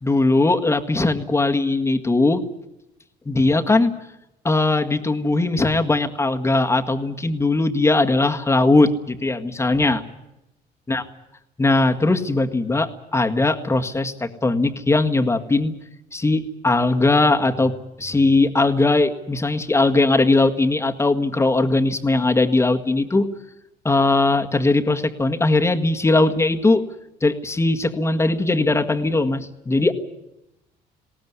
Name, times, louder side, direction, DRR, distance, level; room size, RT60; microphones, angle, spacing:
voice 1, 0.0-2.4 3.3-3.9 4.4-10.0 10.9-11.0 11.6-15.7 16.1-17.7 18.0-23.3 23.8-26.8 27.2-29.9, left 2 dB, 15° left, 5 dB, 1.8 m, -19 dB
20.0 x 18.0 x 9.7 m, 0.87 s
cardioid pair, 110°, 17 cm